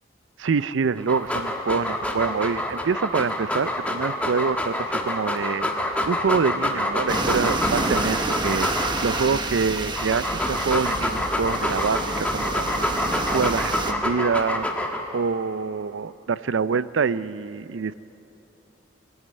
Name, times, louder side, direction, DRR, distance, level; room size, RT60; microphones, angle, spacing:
voice 1, 0.4-12.7 13.3-14.7 15.1-17.9, right 5 dB, 75° right, 16 dB, 0.5 m, -26 dB
Dog, 1.0-9.2 9.8-15.2, left 1 dB, 5° left, 1.4 m, -27 dB
sound 1, 7.1-13.9, right 2 dB, 25° right, 1.0 m, -28 dB
21.0 x 13.5 x 9.6 m, 3.0 s
head